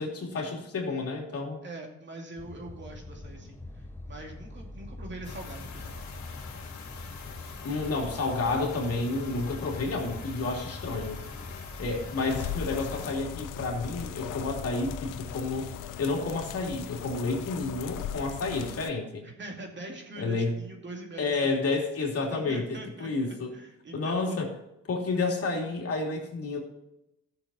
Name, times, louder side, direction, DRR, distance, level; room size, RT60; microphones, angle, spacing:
voice 1, 0.0-1.6 7.6-11.2 11.8-15.7 16.0-19.2 20.2-20.6 21.2-23.5 23.9-24.5 24.9-26.6, left 3 dB, 50° left, 0 dB, 3.0 m, -30 dB
voice 2, 1.6-5.9 19.2-21.7 22.3-24.4, right 2 dB, 35° right, 2 dB, 2.4 m, -43 dB
sound 1, 2.4-15.8, left 2 dB, 5° left, 1.0 m, -43 dB
sound 2, 5.2-13.1, left 6 dB, 65° left, 1.9 m, -44 dB
sound 3, 12.3-18.9, left 10 dB, 80° left, 0.8 m, -39 dB
13.0 x 7.0 x 4.3 m, 0.86 s
cardioid pair, 90°, 31 cm